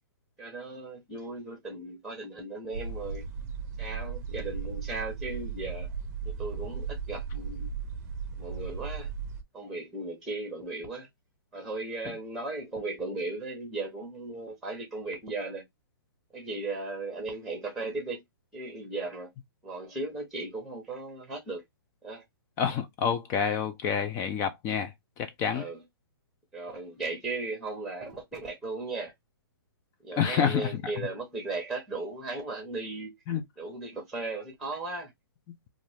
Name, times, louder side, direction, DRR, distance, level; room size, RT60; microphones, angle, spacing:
voice 1, 0.4-3.3 3.8-5.9 6.2-7.7 8.4-9.1 9.5-11.1 11.5-15.6 16.3-18.2 18.5-19.3 19.6-21.6 22.0-22.2 25.5-25.8 26.5-29.1 30.0-33.2 33.6-35.1, right 3 dB, ahead, 0.9 m, -36 dB
sound 1, 2.7-9.4, right 6 dB, 40° right, 0.6 m, -36 dB
voice 2, 22.6-24.9 25.2-25.6 30.2-30.7 33.3-33.4, left 7 dB, 20° left, 0.3 m, -28 dB
2.5 x 2.3 x 3.2 m
hypercardioid pair, 140°, 13 cm